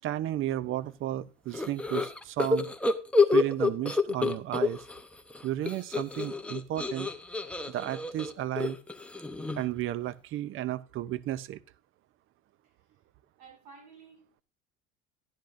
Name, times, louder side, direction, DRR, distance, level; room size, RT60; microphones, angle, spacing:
voice 1, 0.0-2.7 3.3-4.8 5.4-7.1 7.7-8.8 9.6-11.6, right 13 dB, 40° right, 0.5 m, -33 dB
sound 1, 1.5-5.0 5.3-9.8, left 3 dB, 5° left, 0.6 m, -28 dB
voice 2, 8.3-8.6 12.6-13.0 13.4-14.4, right 5 dB, 75° right, 5.2 m, -55 dB
12.0 x 10.5 x 2.5 m
supercardioid pair, 125°, 31 cm